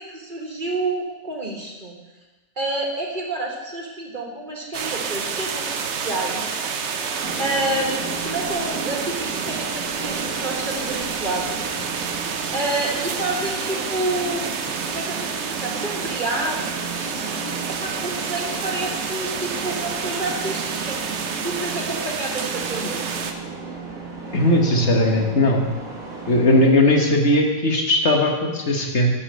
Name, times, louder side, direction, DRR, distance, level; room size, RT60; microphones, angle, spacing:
voice 1, 0.0-2.0 2.6-6.6 7.4-11.8 12.5-14.5 14.9-23.3, right 2 dB, 35° right, 0 dB, 1.7 m, -29 dB
sound 1, 4.7-23.3, right 6 dB, 60° right, 1.0 m, -29 dB
sound 2, 7.2-26.7, right 4 dB, 90° right, 2.3 m, -34 dB
voice 2, 24.3-25.7 26.3-29.1, left 1 dB, 55° left, 2 dB, 1.6 m, -18 dB
11.5 x 5.1 x 7.4 m, 1.2 s
omnidirectional pair, 1.4 m